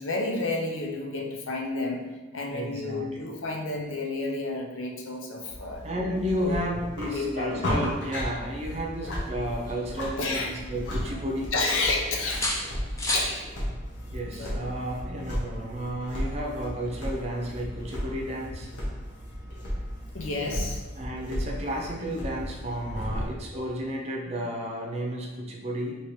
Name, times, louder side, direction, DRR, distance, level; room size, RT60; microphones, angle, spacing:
voice 1, 0.0-2.0 2.3-5.9 6.4-6.6 7.1-7.7 10.2-10.5 10.9-11.0 11.5-12.5 13.1-13.5 14.4-14.6 20.1-20.8, left 2 dB, 85° left, 0 dB, 0.7 m, -30 dB
voice 2, 2.5-3.3 5.8-11.5 14.1-18.7 21.0-26.0, equal, 30° right, -2 dB, 0.6 m, -32 dB
sound 1, 5.5-23.3, equal, 65° left, 1.1 m, -35 dB
sound 2, 9.2-10.7 11.1-11.9 12.3-13.4 15.2-15.4, left 1 dB, 15° left, 0.6 m, -33 dB
4.4 x 3.0 x 3.1 m, 1.2 s
head